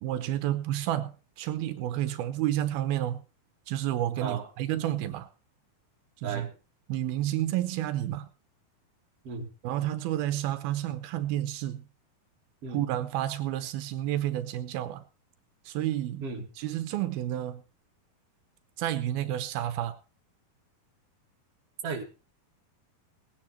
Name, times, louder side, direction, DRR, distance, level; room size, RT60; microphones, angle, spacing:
voice 1, 0.0-3.2 3.7-5.3 6.2-6.5 6.9-8.3 9.6-11.9 12.7-15.0 15.7-16.3 16.6-17.6 18.8-20.0, right 13 dB, 85° right, 2.8 m, -30 dB
voice 2, 4.2-4.5 6.2-6.5 9.2-9.5 12.6-12.8 16.2-16.5 21.8-22.0, right 5 dB, 45° right, 3.1 m, -35 dB
19.0 x 9.8 x 4.4 m
omnidirectional pair, 4.3 m